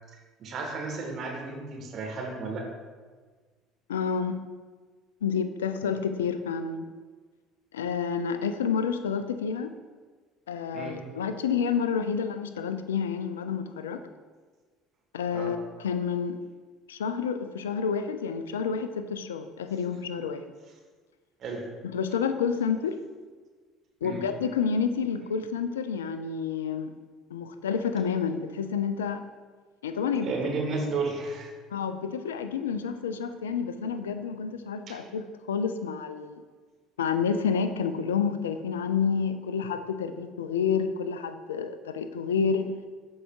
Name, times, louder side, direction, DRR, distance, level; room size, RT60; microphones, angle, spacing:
voice 1, 0.4-2.6 10.7-11.0 15.3-15.5 21.4-21.6 24.0-24.2 30.2-31.5 34.9-35.0, right 3 dB, 40° right, 1 dB, 1.3 m, -33 dB
voice 2, 3.9-4.4 5.2-6.9 7.7-9.7 10.5-14.0 15.1-16.4 16.9-20.5 21.9-23.0 24.0-26.9 27.3-29.3 29.8-30.4 31.7-36.4 37.0-42.7, left 6 dB, 70° left, 10 dB, 0.4 m, -29 dB
11.5 x 4.7 x 2.4 m, 1.4 s
figure-of-eight pair, 60°, 0 cm